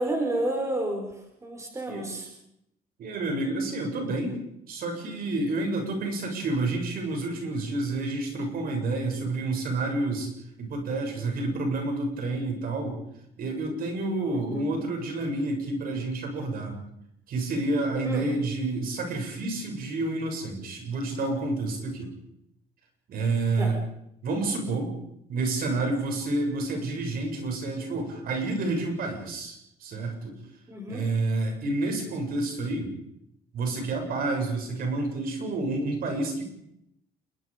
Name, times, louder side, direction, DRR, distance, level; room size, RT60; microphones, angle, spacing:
voice 1, 0.0-2.3 14.3-14.7 18.0-18.3 23.6-23.7 30.7-31.0, right 1 dB, 15° right, 2 dB, 5.1 m, -31 dB
voice 2, 3.0-4.4 4.7-10.3 10.6-13.0 13.4-16.8 17.3-22.1 23.1-23.7 24.2-25.0 25.3-30.4 30.9-32.9 33.5-36.4, right 2 dB, 60° right, 3 dB, 7.6 m, -29 dB
29.5 x 21.0 x 5.3 m, 0.79 s
cardioid pair, 110°, 17 cm